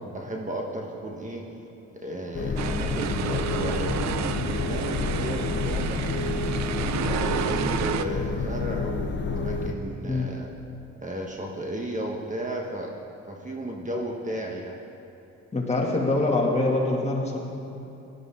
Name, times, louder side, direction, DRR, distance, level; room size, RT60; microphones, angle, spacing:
voice 1, 0.0-1.5 2.0-6.4 7.0-10.5 11.0-12.9 13.3-14.8, right 1 dB, 25° right, 0 dB, 1.4 m, -34 dB
sound 1, 1.8-10.5, right 3 dB, 80° right, 1.5 m, -45 dB
sound 2, 2.3-9.7, left 4 dB, 40° left, 0.9 m, -29 dB
sound 3, 2.6-8.0, right 10 dB, 65° right, 0.6 m, -31 dB
voice 2, 15.5-17.4, left 2 dB, 20° left, -2 dB, 2.5 m, -24 dB
17.5 x 12.5 x 3.8 m, 2.9 s
cardioid pair, 90°, 30 cm